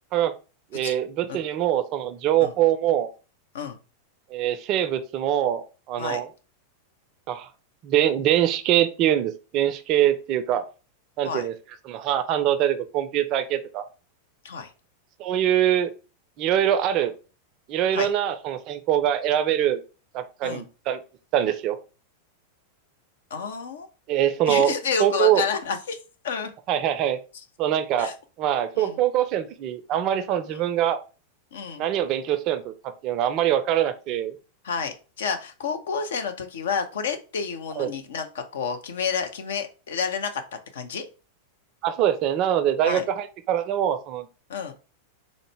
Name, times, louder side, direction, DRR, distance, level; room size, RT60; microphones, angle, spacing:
voice 1, 0.7-3.1 4.3-6.3 7.3-7.5 7.8-10.7 11.2-11.5 11.9-13.8 15.2-15.9 16.4-17.1 17.7-19.8 20.1-21.0 21.3-21.8 24.1-24.7 25.0-25.4 26.7-27.2 27.6-28.1 28.4-31.0 31.8-32.7 33.0-34.3 37.8-37.9 41.8-44.3, right 11 dB, 40° right, 9 dB, 0.4 m, -23 dB
voice 2, 23.3-23.9 24.5-26.0 26.2-26.5 28.0-28.1 28.7-29.0 30.5-30.6 31.5-31.8 34.6-40.4 40.7-41.0 42.8-43.0 44.5-44.7, left 6 dB, 60° left, 7 dB, 0.5 m, -30 dB
3.8 x 2.1 x 3.3 m, 0.33 s
figure-of-eight pair, 90°, 0 cm